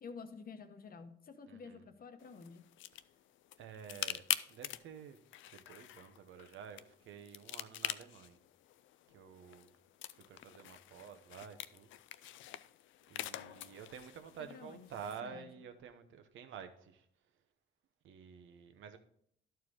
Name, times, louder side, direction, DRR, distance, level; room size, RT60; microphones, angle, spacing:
voice 1, 0.0-2.6 14.5-15.5, left 5 dB, 50° left, 1.1 m, -50 dB
voice 2, 1.5-1.8 3.6-4.2 4.5-5.2 5.5-8.4 9.1-9.7 10.3-11.9 13.1-17.0 18.0-19.0, right 7 dB, 75° right, 1.0 m, -50 dB
sound 1, 2.2-15.2, left 13 dB, 75° left, 0.4 m, -45 dB
11.5 x 4.7 x 4.9 m
cardioid pair, 90°, 20 cm